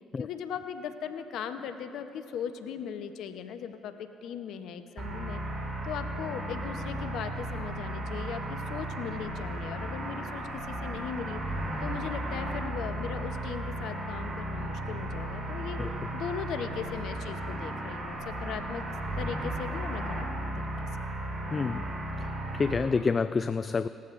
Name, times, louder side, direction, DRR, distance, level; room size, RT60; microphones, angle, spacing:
voice 1, 0.2-5.4 5.8-15.8 16.1-18.8 19.2-20.9, left 7 dB, 70° left, 8 dB, 0.8 m, -38 dB
sound 1, 5.0-22.7, right 1 dB, 50° right, 2.6 m, -35 dB
voice 2, 21.5-21.9 22.2-23.9, left 4 dB, 35° left, 13 dB, 0.3 m, -28 dB
19.5 x 14.0 x 2.5 m, 2.8 s
hypercardioid pair, 55°, 0 cm